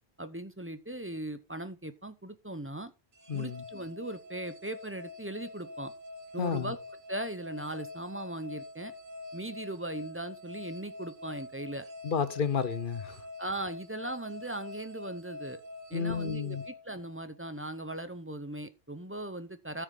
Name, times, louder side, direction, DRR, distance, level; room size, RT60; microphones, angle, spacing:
voice 1, 0.2-2.9 3.3-5.9 6.3-6.8 7.1-8.9 9.3-11.9 13.4-15.6 15.9-19.8, right 1 dB, 15° right, 0.7 m, -39 dB
sound 1, 3.1-17.5, left 2 dB, 55° right, 1.3 m, -45 dB
voice 2, 3.3-3.6 6.4-6.7 12.0-13.2 15.9-16.6, left 6 dB, 55° left, 1.0 m, -31 dB
13.5 x 6.4 x 3.8 m
omnidirectional pair, 1.0 m